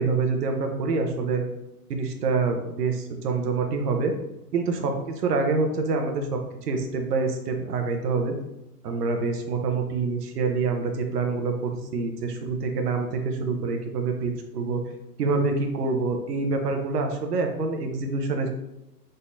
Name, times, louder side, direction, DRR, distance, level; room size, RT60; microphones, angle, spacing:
voice 1, 0.0-1.4 1.9-4.1 4.5-6.3 6.6-8.3 8.8-14.8 15.2-18.5, right 4 dB, 75° right, 4 dB, 1.0 m, -26 dB
4.2 x 3.9 x 2.6 m, 0.89 s
hypercardioid pair, 125°, 48 cm